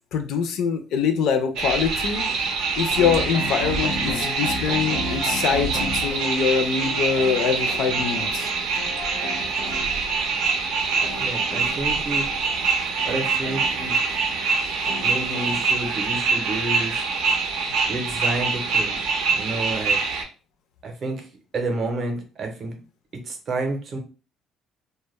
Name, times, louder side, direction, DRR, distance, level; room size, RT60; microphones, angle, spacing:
voice 1, 0.1-8.5, left 6 dB, 65° left, 7 dB, 0.4 m, -24 dB
sound 1, 1.6-20.2, right 4 dB, 80° right, 0.5 m, -25 dB
sound 2, 2.9-16.4, left 1 dB, 90° left, 0.8 m, -35 dB
voice 2, 11.2-12.3 13.0-14.0 15.0-17.0 17.9-19.0 19.3-20.0 20.8-21.2 21.5-22.8 23.3-24.0, right 2 dB, 35° right, 3 dB, 0.6 m, -30 dB
2.1 x 2.0 x 3.0 m, 0.33 s
cardioid pair, 170°, 0 cm